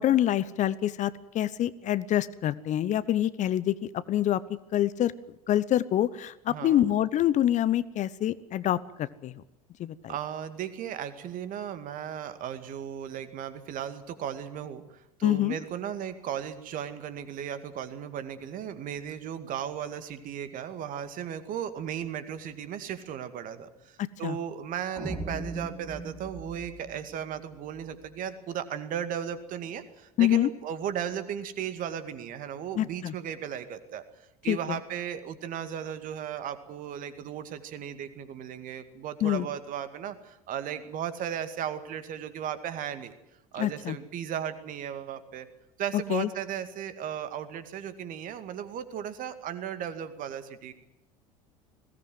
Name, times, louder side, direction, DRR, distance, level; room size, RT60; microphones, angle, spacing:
voice 1, 0.0-3.7 4.1-4.4 4.7-5.1 5.5-9.3 9.8-10.1 15.2-15.5 24.0-24.4 30.2-30.5 32.8-33.1 34.5-34.8 39.2-39.5 43.6-44.0 46.1-46.3, left 12 dB, 40° left, 17 dB, 0.9 m, -26 dB
voice 2, 6.5-6.9 10.1-34.0 34.4-43.1 43.5-45.5 45.8-50.7, right 9 dB, 45° right, 11 dB, 2.2 m, -36 dB
sound 1, 25.0-28.1, right 2 dB, 5° right, 7.1 m, -39 dB
21.0 x 17.5 x 9.4 m, 0.90 s
figure-of-eight pair, 70°, 19 cm